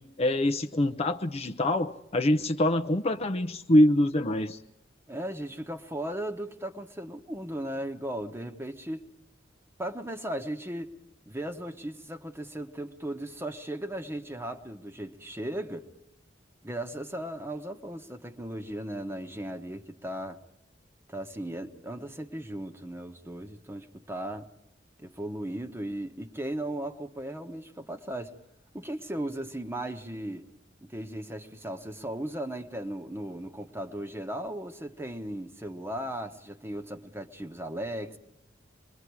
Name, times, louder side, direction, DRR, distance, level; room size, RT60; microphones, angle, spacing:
voice 1, 0.0-4.6, left 1 dB, 35° left, 0.7 m, -25 dB
voice 2, 5.1-9.0 9.8-10.9 11.3-15.9 16.6-20.4 21.1-24.5 25.0-28.3 28.7-30.5 30.8-38.2, right 1 dB, 15° right, 1.2 m, -36 dB
27.0 x 22.0 x 4.7 m
head